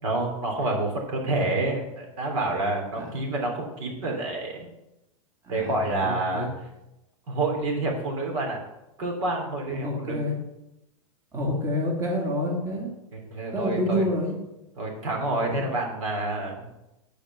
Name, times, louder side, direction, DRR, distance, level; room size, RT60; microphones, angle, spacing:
voice 1, 0.0-4.7 5.5-6.5 7.3-8.6 9.0-10.2 13.1-14.0 14.8-16.7, right 2 dB, 60° right, 2 dB, 3.3 m, -28 dB
voice 2, 5.4-6.5 9.8-10.4 11.3-12.9 13.5-14.4 15.5-15.7, left 1 dB, 15° right, -2 dB, 2.4 m, -28 dB
10.0 x 5.0 x 6.8 m, 0.92 s
hypercardioid pair, 125°, 18 cm